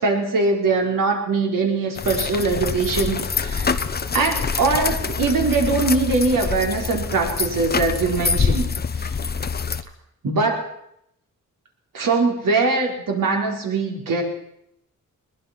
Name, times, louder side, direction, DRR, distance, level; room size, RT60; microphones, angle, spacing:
voice 1, 0.0-3.8 4.1-8.7 9.0-9.1 10.2-10.6 11.9-14.2, right 3 dB, 80° right, 1 dB, 4.8 m, -22 dB
sound 1, 2.0-9.8, left 5 dB, 30° left, 0.9 m, -25 dB
22.0 x 20.5 x 6.1 m, 0.76 s
wide cardioid pair, 175°, 32 cm